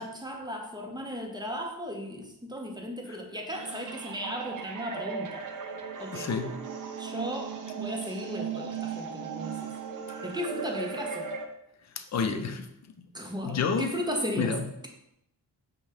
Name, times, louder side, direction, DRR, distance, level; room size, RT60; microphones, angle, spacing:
voice 1, 0.0-5.5 6.0-6.3 7.0-9.7 10.2-11.3 13.1-14.9, equal, 10° right, 1 dB, 0.8 m, -36 dB
sound 1, 3.5-11.5, right 6 dB, 50° right, 0.6 m, -37 dB
voice 2, 6.1-6.6 12.0-12.7 13.0-13.1 13.4-13.9 14.4-14.6, left 5 dB, 40° left, 8 dB, 0.5 m, -29 dB
5.3 x 2.3 x 3.4 m, 0.81 s
cardioid pair, 70°, 41 cm